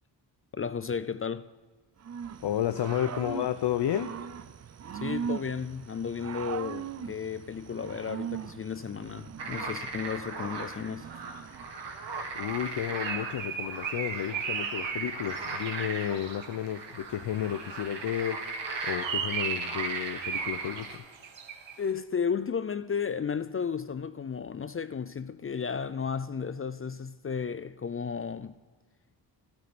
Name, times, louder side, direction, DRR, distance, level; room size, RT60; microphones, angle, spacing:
voice 1, 0.5-1.5 4.9-11.1 21.8-28.6, left 6 dB, 30° left, 0.4 m, -33 dB
Growling / Cricket, 2.0-12.9, right 7 dB, 35° right, 0.5 m, -40 dB
voice 2, 2.4-4.1 12.3-18.4 18.8-21.0, left 11 dB, 65° left, 0.7 m, -32 dB
sound 1, 9.4-21.0, right 3 dB, 65° right, 1.9 m, -38 dB
Bird, 12.6-16.7 18.3-21.8, right 7 dB, 80° right, 1.4 m, -36 dB
13.0 x 12.5 x 4.2 m
cardioid pair, 95°, 45 cm